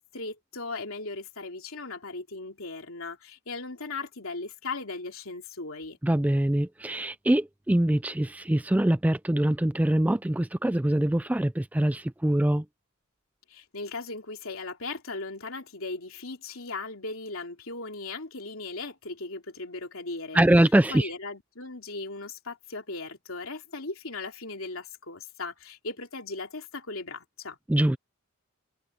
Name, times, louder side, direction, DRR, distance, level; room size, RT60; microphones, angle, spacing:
voice 1, 0.0-6.0 13.5-20.4 20.9-27.6, left 3 dB, 70° left, 3.5 m, -38 dB
voice 2, 6.0-12.6 20.3-21.1 27.7-28.0, right 1 dB, 5° right, 0.4 m, -23 dB
open air
head